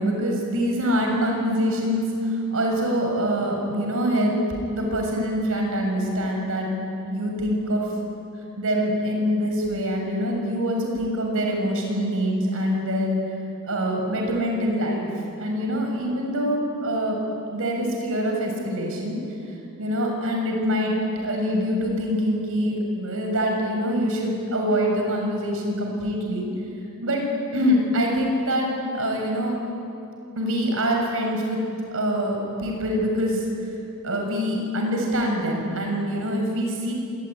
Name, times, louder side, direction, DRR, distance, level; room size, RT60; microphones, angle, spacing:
voice 1, 0.0-4.3 4.7-6.7 7.0-7.8 8.6-13.2 13.7-15.1 15.4-17.2 17.5-19.2 19.8-26.5 27.0-27.2 27.5-29.5 30.4-31.6 31.9-33.4 34.0-36.9, equal, 65° right, 1 dB, 7.0 m, -24 dB
25.5 x 21.5 x 9.9 m, 2.7 s
head